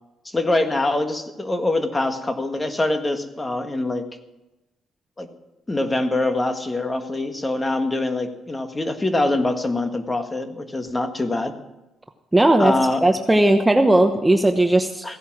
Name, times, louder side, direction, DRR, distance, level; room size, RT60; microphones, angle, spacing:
voice 1, 0.2-4.1 5.2-5.3 5.7-11.5 12.6-13.0 15.0-15.2, left 2 dB, 20° left, 7 dB, 1.6 m, -24 dB
voice 2, 12.3-12.7 13.0-15.2, right 1 dB, 10° right, 6 dB, 0.9 m, -17 dB
16.0 x 11.0 x 6.0 m, 1.0 s
cardioid pair, 90°, 0 cm